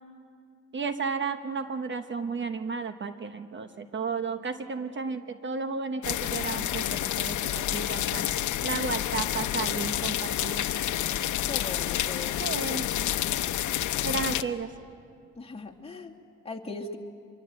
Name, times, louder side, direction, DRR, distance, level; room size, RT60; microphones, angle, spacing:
voice 1, 0.7-8.3 8.6-10.7 12.4-12.9 14.0-14.7, right 4 dB, 40° right, 9 dB, 1.0 m, -33 dB
sound 1, 6.0-14.4, left 12 dB, 75° left, 0.8 m, -29 dB
voice 2, 11.5-12.5 15.4-16.1 16.4-17.0, left 3 dB, 20° left, 0 dB, 2.3 m, -39 dB
25.0 x 23.0 x 7.8 m, 2.4 s
cardioid pair, 90°, 30 cm